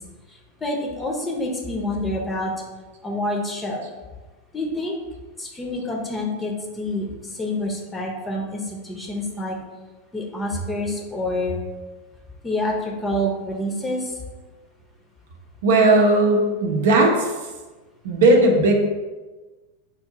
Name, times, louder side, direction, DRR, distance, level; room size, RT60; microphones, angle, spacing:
voice 1, 0.3-2.5 3.0-3.9 4.5-5.0 5.4-9.6 10.1-11.6 12.4-14.2, left 1 dB, 15° left, -1 dB, 0.7 m, -27 dB
voice 2, 15.6-17.4 18.0-18.7, right 2 dB, 60° right, 2 dB, 0.6 m, -17 dB
4.5 x 2.6 x 3.8 m, 1.2 s
figure-of-eight pair, 90°, 0 cm